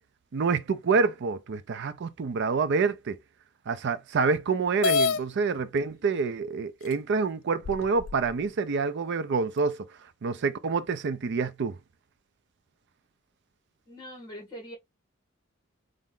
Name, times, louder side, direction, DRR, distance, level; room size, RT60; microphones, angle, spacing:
voice 1, 0.3-3.2 3.7-9.8 10.2-11.8, right 4 dB, 60° right, 0.5 m, -27 dB
sound 1, 4.8-5.2 6.2-6.3 6.9-7.0 7.6-8.3, left 5 dB, 75° left, 0.4 m, -26 dB
voice 2, 13.9-14.8, equal, 20° left, 1.7 m, -42 dB
4.3 x 2.5 x 3.7 m
head